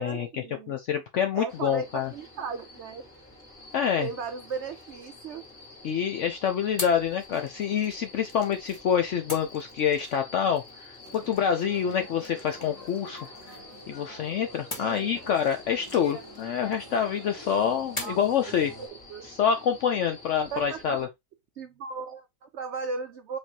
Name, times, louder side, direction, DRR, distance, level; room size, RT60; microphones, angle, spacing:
voice 1, 0.0-0.7 1.3-3.0 4.0-5.4 14.8-15.1 18.0-18.2 18.8-19.3 20.5-21.0 21.6-23.4, right 5 dB, 80° right, 0.6 m, -36 dB
voice 2, 0.7-2.1 3.7-4.1 5.8-13.2 13.5-13.6 13.9-18.7 19.2-21.1, left 8 dB, 70° left, 0.7 m, -27 dB
sound 1, 1.5-21.0, left 2 dB, 35° left, 2.3 m, -49 dB
sound 2, 4.5-5.9 6.8-8.8 9.3-14.0 14.7-17.2 18.0-18.4, left 2 dB, 20° left, 0.9 m, -44 dB
sound 3, 11.0-18.9, equal, 55° left, 2.5 m, -47 dB
5.2 x 3.4 x 2.7 m
omnidirectional pair, 1.8 m